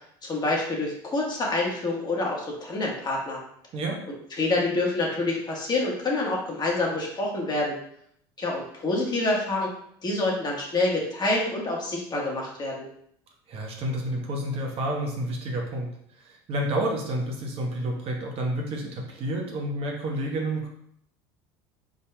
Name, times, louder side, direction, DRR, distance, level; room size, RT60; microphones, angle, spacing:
voice 1, 0.2-3.4 4.1-7.8 8.4-9.7 10.0-12.9, left 2 dB, 30° left, -2 dB, 1.3 m, -27 dB
voice 2, 13.5-15.9 16.2-20.7, right 1 dB, 45° right, 0 dB, 1.0 m, -29 dB
4.2 x 3.7 x 2.2 m, 0.68 s
supercardioid pair, 95°, 13 cm